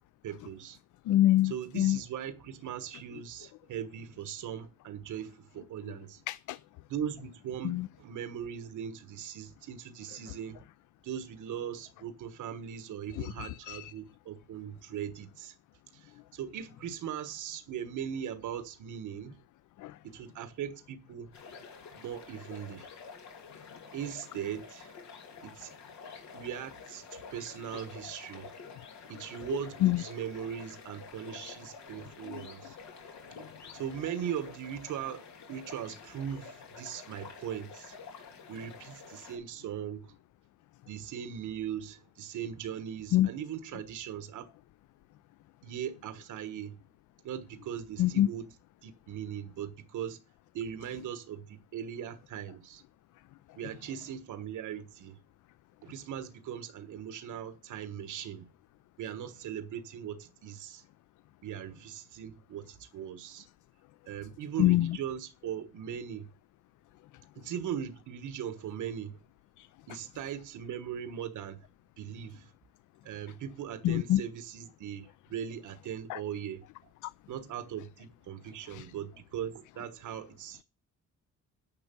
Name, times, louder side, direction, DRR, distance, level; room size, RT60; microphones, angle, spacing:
voice 1, 0.2-0.8 1.4-6.2 6.9-10.6 11.0-15.6 15.9-19.4 20.0-21.3 21.9-22.9 23.9-24.9 25.4-25.8 26.3-28.5 29.1-32.8 33.7-38.0 38.5-40.1 40.9-44.5 45.6-46.8 47.2-48.5 48.8-50.2 50.5-52.8 53.6-55.2 55.8-58.5 59.0-60.8 61.4-63.5 64.1-66.3 67.4-69.2 69.9-71.7 72.0-72.5 73.0-76.9 77.3-80.6, right 9 dB, 85° right, 1.3 m, -39 dB
voice 2, 1.1-2.0 6.3-6.6 7.6-7.9 13.2-13.9 19.8-20.0 29.8-30.0 32.2-32.4 43.1-43.3 48.0-48.3 64.6-65.0 69.6-69.7 73.8-74.2 76.1-76.2 78.7-78.9, left 14 dB, 85° left, 0.5 m, -26 dB
sound 1, 21.3-39.4, left 5 dB, 70° left, 3.1 m, -49 dB
10.5 x 6.5 x 6.9 m
wide cardioid pair, 170°, 30 cm